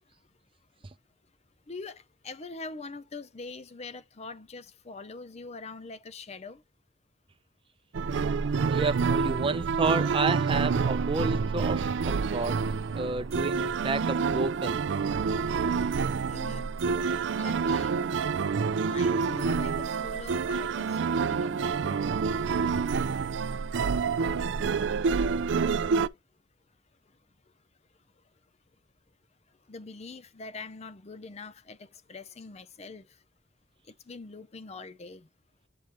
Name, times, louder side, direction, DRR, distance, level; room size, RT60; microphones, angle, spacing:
voice 1, 1.7-6.6 16.3-16.7 17.3-18.2 18.8-22.1 29.7-33.2 33.9-35.3, left 3 dB, 35° left, 0.6 m, -43 dB
sound 1, 7.9-26.1, right 5 dB, 75° right, 0.4 m, -28 dB
voice 2, 8.7-12.6 12.9-14.8, right 3 dB, 30° right, 0.5 m, -31 dB
7.6 x 4.9 x 3.0 m
head